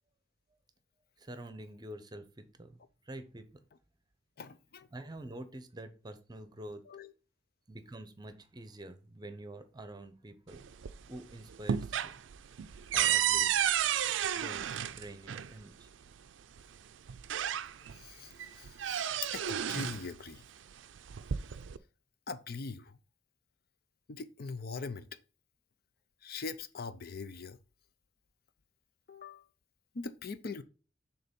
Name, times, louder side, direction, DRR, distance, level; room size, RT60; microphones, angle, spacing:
voice 1, 1.2-2.8 3.0-3.7 4.9-6.8 7.7-10.6 11.1-12.1 12.9-13.6 14.3-14.6 14.9-15.9, right 1 dB, 20° right, 0.8 m, -47 dB
voice 2, 4.4-4.9 6.9-7.1 18.0-19.1 19.3-20.4 22.3-23.0 24.1-25.1 26.2-27.6 29.1-29.4 29.9-30.6, left 4 dB, 55° left, 0.5 m, -42 dB
sound 1, 10.5-11.2 11.5-15.5 16.6-16.7 17.1-18.0 18.4-20.1 21.0-21.8, right 10 dB, 80° right, 0.4 m, -32 dB
6.7 x 3.9 x 5.2 m
head